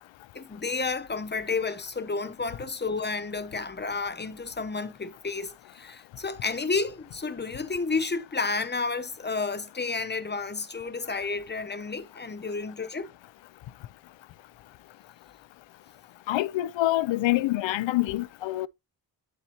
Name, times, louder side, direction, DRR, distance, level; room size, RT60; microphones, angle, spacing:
voice 1, 0.3-13.1, left 4 dB, 25° left, 0.9 m, -31 dB
voice 2, 16.3-18.7, left 16 dB, 80° left, 0.5 m, -26 dB
11.5 x 4.2 x 2.9 m
cardioid pair, 85°, 45 cm